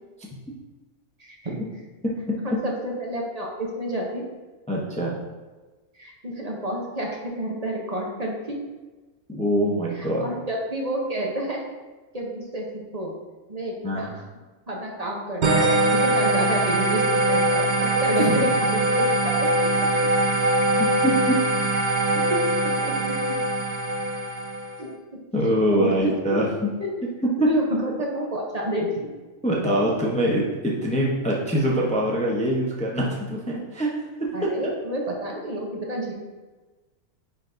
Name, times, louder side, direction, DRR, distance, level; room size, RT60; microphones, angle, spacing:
voice 1, 1.2-1.6 2.4-4.2 6.0-8.6 9.9-11.6 12.1-13.1 13.5-14.2 14.7-19.9 21.8-22.0 22.3-23.1 24.8-24.9 25.4-26.1 26.8-26.9 27.4-29.0 34.3-36.1, equal, 35° right, -1 dB, 0.7 m, -30 dB
voice 2, 2.0-2.6 4.7-5.1 9.3-10.3 13.8-14.1 18.2-18.4 20.8-21.4 25.3-26.7 27.2-27.5 29.4-33.9 34.2-34.3, equal, 5° left, -3 dB, 0.6 m, -24 dB
sound 1, 15.4-24.8, right 1 dB, 75° right, 0.4 m, -22 dB
9.7 x 4.1 x 2.7 m, 1.2 s
omnidirectional pair, 1.6 m